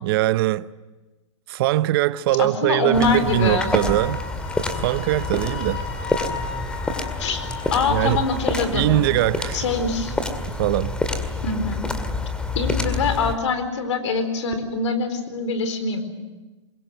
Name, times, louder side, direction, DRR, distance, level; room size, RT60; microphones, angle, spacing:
voice 1, 0.0-0.7 1.5-4.2 4.8-5.8 7.9-8.3 8.7-9.7 10.6-11.0, right 16 dB, 50° right, 0.7 m, -21 dB
voice 2, 2.4-3.7 7.2-7.4 7.7-8.9 9.5-10.2 11.4-11.9 12.5-16.0, left 3 dB, 75° left, 4.4 m, -24 dB
sound 1, 2.9-13.4, left 2 dB, 5° left, 2.0 m, -28 dB
Wind instrument woodwind instrument, 3.3-8.4, left 8 dB, 50° left, 3.8 m, -35 dB
25.0 x 22.0 x 7.9 m
hypercardioid pair, 135°, 16 cm